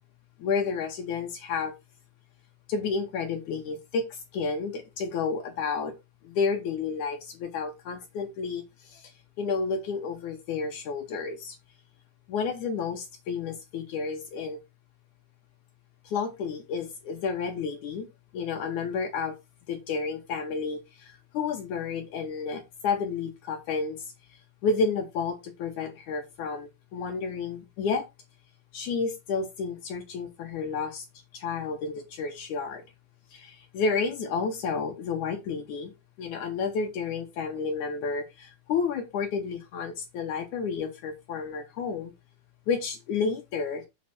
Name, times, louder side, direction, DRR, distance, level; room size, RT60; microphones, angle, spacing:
voice 1, 0.4-1.7 2.7-5.9 6.2-11.6 12.3-14.6 16.0-18.1 18.3-19.3 19.7-24.1 24.6-28.0 28.7-31.1 31.3-32.8 33.3-35.9 36.2-42.1 42.7-43.8, left 5 dB, 65° left, 2.0 m, -31 dB
7.8 x 4.9 x 6.0 m
omnidirectional pair, 5.1 m